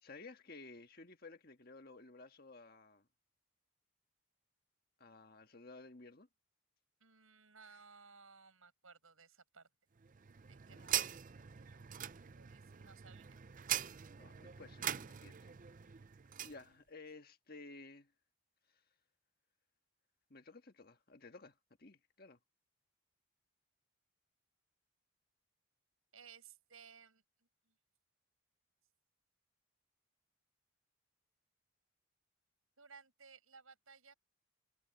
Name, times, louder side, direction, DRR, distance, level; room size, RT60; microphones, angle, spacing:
voice 1, 0.0-3.1 5.0-6.3 10.7-10.8 14.2-15.5 16.4-18.1 20.3-22.4, left 3 dB, 45° left, 1.6 m, -55 dB
voice 2, 7.0-9.7 10.5-11.9 12.3-13.4 26.1-27.8 32.8-34.1, right 5 dB, 80° right, 6.5 m, -60 dB
sound 1, 10.0-16.6, right 10 dB, 40° right, 0.5 m, -42 dB
head